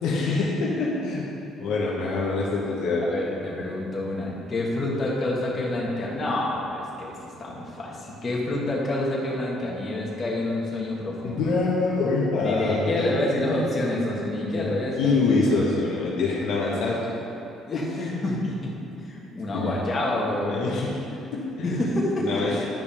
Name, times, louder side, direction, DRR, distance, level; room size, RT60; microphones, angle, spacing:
voice 1, 0.0-1.3 1.6-3.0 11.2-13.1 14.5-17.0 17.7-18.2 19.5-19.7 20.5-21.8 22.2-22.6, left 3 dB, 80° left, -4 dB, 1.1 m, -25 dB
voice 2, 3.0-11.5 12.4-15.4 17.7-17.9 18.2-18.7 19.1-20.6 21.6-22.6, left 1 dB, 35° left, -4 dB, 1.7 m, -28 dB
10.5 x 5.2 x 3.5 m, 2.8 s
cardioid pair, 95°, 0 cm